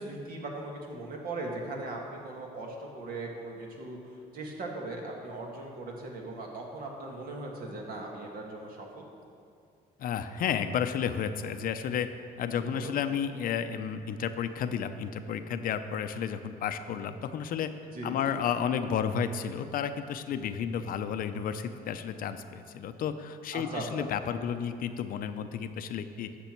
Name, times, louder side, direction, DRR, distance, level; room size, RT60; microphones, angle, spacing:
voice 1, 0.0-4.0 4.3-9.1 12.4-12.9 17.9-18.4 23.5-24.1, right 2 dB, 60° right, 0 dB, 1.9 m, -39 dB
voice 2, 10.0-12.1 12.4-17.7 18.0-26.3, left 8 dB, 55° left, 10 dB, 0.6 m, -32 dB
12.5 x 6.9 x 4.5 m, 2.4 s
cardioid pair, 110°, 17 cm